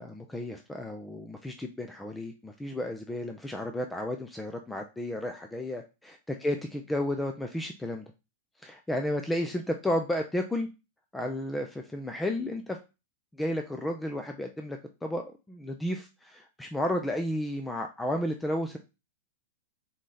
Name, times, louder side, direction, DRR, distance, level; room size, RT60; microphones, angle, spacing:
voice 1, 0.0-8.0 8.6-10.7 11.1-12.8 13.3-18.8, left 1 dB, 10° left, 4 dB, 0.5 m, -32 dB
3.8 x 3.1 x 3.9 m, 0.28 s
hypercardioid pair, 110°, 0 cm